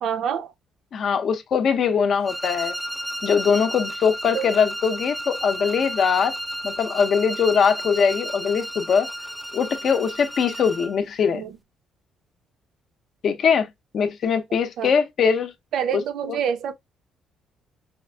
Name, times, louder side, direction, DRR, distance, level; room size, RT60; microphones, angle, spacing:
voice 1, 0.0-0.5 4.3-4.5 11.3-11.5 14.8-14.9 15.7-16.7, right 8 dB, 65° right, 0.5 m, -26 dB
voice 2, 0.9-2.7 3.2-6.3 6.6-9.1 9.5-11.4 13.2-13.7 13.9-15.5 16.3-16.4, left 6 dB, 50° left, 0.6 m, -21 dB
sound 1, 2.2-11.0, equal, 10° right, 0.3 m, -33 dB
5.0 x 2.5 x 2.2 m
cardioid pair, 150°, 0 cm